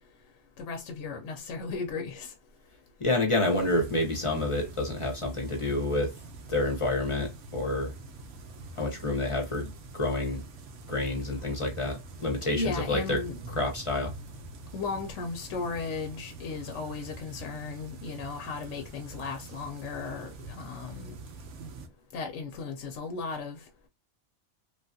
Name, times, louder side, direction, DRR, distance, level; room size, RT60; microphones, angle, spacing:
voice 1, 0.6-2.3 12.6-13.3 14.7-21.2 22.1-23.6, left 4 dB, 80° left, 0.9 m, -36 dB
voice 2, 3.0-6.1 6.5-7.9 8.7-10.4 10.9-13.2 13.6-14.1, left 2 dB, 30° left, 0.7 m, -28 dB
sound 1, 3.4-21.9, right 3 dB, 85° right, 1.0 m, -45 dB
3.4 x 2.3 x 2.6 m
omnidirectional pair, 1.2 m